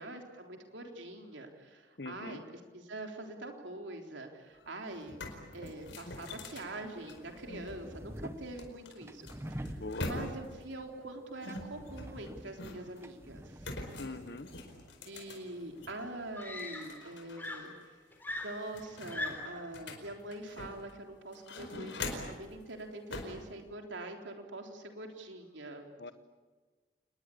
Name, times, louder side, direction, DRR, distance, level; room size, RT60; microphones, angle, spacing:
voice 1, 0.0-13.7 15.1-17.7 18.4-25.9, right 2 dB, 75° right, 3 dB, 3.6 m, -44 dB
voice 2, 2.0-2.4 9.8-10.3 14.0-14.5 26.0-26.1, left 2 dB, 60° left, 12 dB, 1.3 m, -42 dB
sound 1, 4.5-4.6 4.9-7.7 8.6-10.6 11.4-13.0 13.6-16.0 16.4-17.5 17.8-17.9 18.3-20.9 21.3-22.4 23.1-23.4, left 2 dB, 80° left, 4.7 m, -43 dB
sound 2, 5.9-17.0, equal, 15° right, 1.0 m, -49 dB
Screaming, 15.5-15.6 16.3-17.1 17.4-19.7 20.7-20.9, left 2 dB, 10° left, 3.9 m, -41 dB
28.5 x 20.5 x 8.6 m, 1.4 s
head